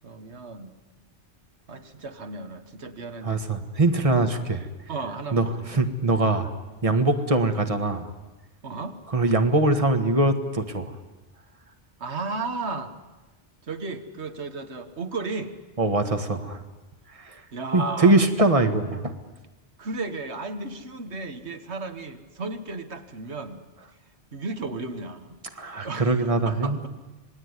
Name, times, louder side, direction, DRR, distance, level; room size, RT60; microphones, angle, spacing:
voice 1, 0.0-0.8 1.7-3.4 4.9-5.8 8.6-9.0 12.0-12.9 13.6-15.6 17.5-18.3 19.8-23.6 24.3-25.4 25.8-26.9, right 3 dB, 85° right, 9 dB, 1.7 m, -34 dB
voice 2, 3.2-4.7 5.3-6.5 6.8-8.1 9.1-11.0 15.8-16.6 17.2-17.4 17.7-19.1 25.6-26.8, right 2 dB, 30° right, 7 dB, 1.8 m, -22 dB
27.0 x 19.5 x 9.8 m, 1.1 s
omnidirectional pair, 1.1 m